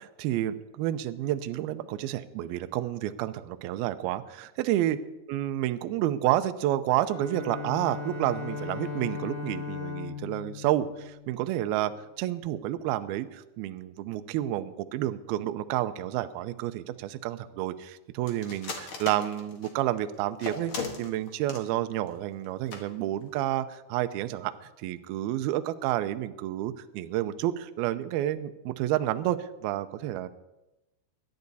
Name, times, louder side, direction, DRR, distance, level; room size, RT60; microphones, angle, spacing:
voice 1, 0.2-5.0 5.3-11.9 12.2-24.5 24.8-30.3, right 13 dB, 85° right, 10 dB, 2.1 m, -30 dB
Bowed string instrument, 7.0-12.0, left 6 dB, 60° left, 7.3 m, -38 dB
sound 1, 18.3-19.8 20.4-21.7 22.0-22.1 22.4-22.5 22.7-22.8 23.2-23.4, left 4 dB, 80° left, 1.2 m, -36 dB
24.5 x 11.0 x 4.1 m, 0.98 s
omnidirectional pair, 5.3 m